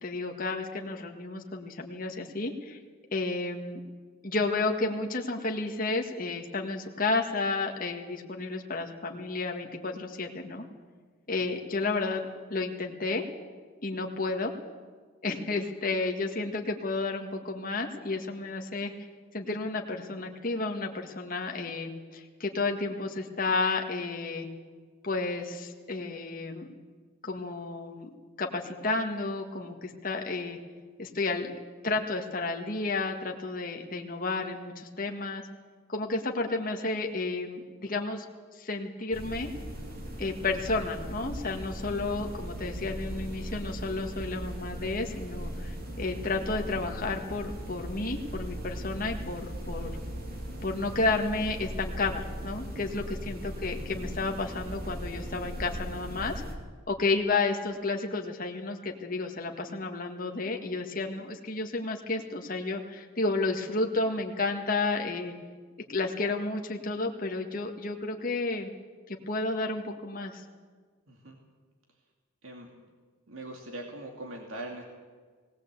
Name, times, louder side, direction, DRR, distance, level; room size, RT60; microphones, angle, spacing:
voice 1, 0.0-2.8 3.1-3.8 4.2-10.6 11.3-13.3 13.8-14.5 15.2-18.9 19.3-24.5 25.0-26.7 27.2-30.6 31.0-31.5 31.8-35.4 35.9-38.3 38.5-39.5 40.2-50.0 50.6-56.3 56.9-65.3 65.9-68.7 69.1-70.4, left 3 dB, 40° left, 2 dB, 1.8 m, -31 dB
sound 1, 39.1-56.5, equal, 45° right, 2.7 m, -38 dB
voice 2, 71.1-71.4 72.4-72.7 73.3-74.8, right 1 dB, 70° right, 1 dB, 2.5 m, -41 dB
20.0 x 17.5 x 8.2 m, 1.5 s
head